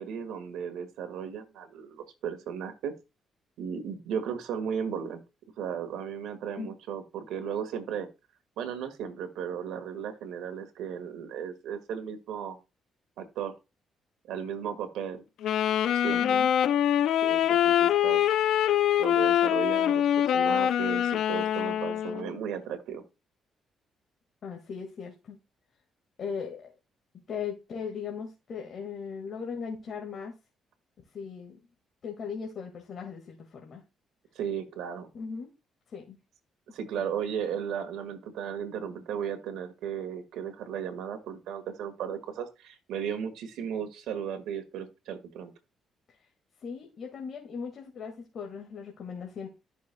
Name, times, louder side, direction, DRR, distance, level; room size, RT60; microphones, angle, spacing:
voice 1, 0.0-2.9 3.6-5.2 5.6-8.1 8.6-12.6 13.2-13.5 14.3-15.2 15.9-16.2 17.2-18.2 19.0-23.0 34.4-35.1 36.7-45.5, right 8 dB, 85° right, 7 dB, 1.7 m, -35 dB
Wind instrument woodwind instrument, 15.4-22.3, left 10 dB, 75° left, 0.5 m, -24 dB
voice 2, 24.4-25.4 26.2-26.7 27.3-30.4 31.1-31.6 32.0-33.8 35.1-35.5 35.9-36.2 37.0-37.1 46.6-49.5, left 6 dB, 55° left, 1 dB, 1.9 m, -38 dB
13.5 x 6.2 x 2.3 m, 0.27 s
cardioid pair, 90°, 0 cm